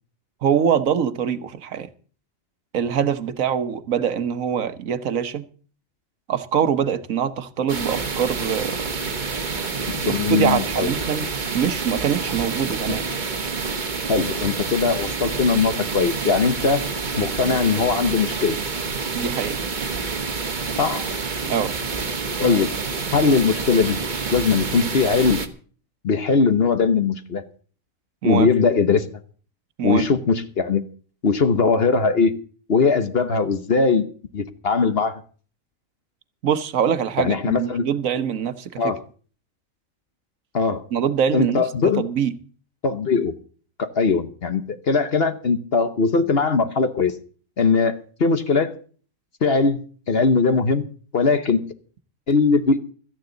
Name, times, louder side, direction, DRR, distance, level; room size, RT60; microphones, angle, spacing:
voice 1, 0.4-1.9 2.7-5.4 6.3-8.9 9.8-11.3 11.5-13.1 19.1-19.6 21.4-21.7 28.2-28.5 29.8-30.0 36.4-38.9 40.9-41.7 42.0-42.3, right 8 dB, 75° right, 1.4 m, -23 dB
sound 1, 7.7-25.5, right 4 dB, 35° right, 1.3 m, -28 dB
voice 2, 9.9-10.9 12.9-13.0 14.1-16.8 17.2-18.6 20.8-21.1 22.4-22.7 23.1-24.0 24.3-25.4 26.0-27.4 28.2-29.1 29.8-30.8 31.2-32.3 32.7-34.1 34.3-35.2 37.2-37.8 38.8-39.0 40.5-40.9 41.3-42.1 42.8-43.3 43.8-47.1 47.6-48.7 49.4-49.8 50.1-50.9 51.1-51.6 52.3-52.8, left 4 dB, 50° left, 1.2 m, -20 dB
16.5 x 13.5 x 3.9 m
omnidirectional pair, 1.4 m